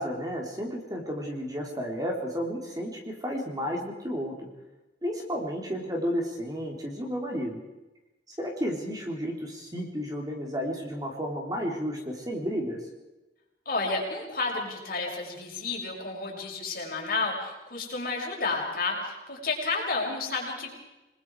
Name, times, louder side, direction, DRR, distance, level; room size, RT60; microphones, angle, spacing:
voice 1, 0.0-4.5 5.0-7.6 8.4-12.8, equal, 20° right, 1 dB, 3.6 m, -32 dB
voice 2, 13.6-20.7, left 3 dB, 55° left, -1 dB, 6.1 m, -31 dB
28.5 x 20.5 x 4.8 m, 1.0 s
head